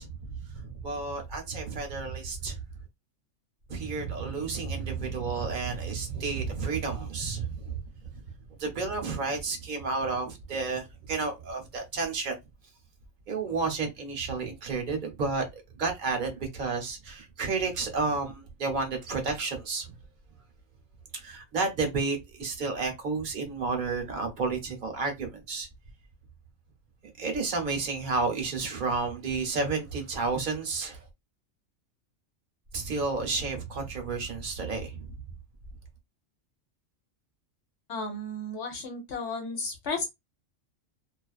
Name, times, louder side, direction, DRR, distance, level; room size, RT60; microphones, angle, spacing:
voice 1, 0.0-2.6 3.7-7.8 8.6-12.4 13.3-19.9 21.1-25.7 27.2-31.0 32.7-35.1, right 4 dB, 45° right, 0.8 m, -31 dB
voice 2, 37.9-40.0, left 2 dB, 70° left, 0.9 m, -33 dB
2.4 x 2.2 x 2.3 m
omnidirectional pair, 1.3 m